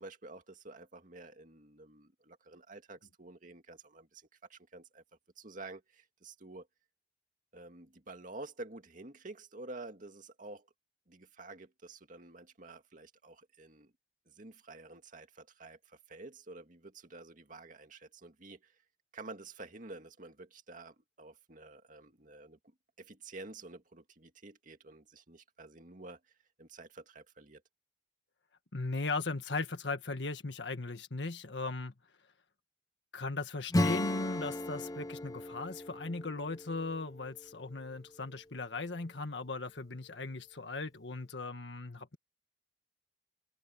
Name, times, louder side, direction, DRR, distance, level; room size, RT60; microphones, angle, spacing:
voice 1, 0.0-5.0 5.4-6.7 7.5-10.7 11.1-13.9 14.3-18.6 19.1-22.6 23.0-26.2 26.6-27.6, right 2 dB, 50° right, 2.1 m, -50 dB
voice 2, 28.7-31.9 33.1-42.2, left 3 dB, 85° left, 1.6 m, -38 dB
Acoustic guitar / Strum, 33.7-38.0, left 1 dB, 20° left, 0.7 m, -35 dB
head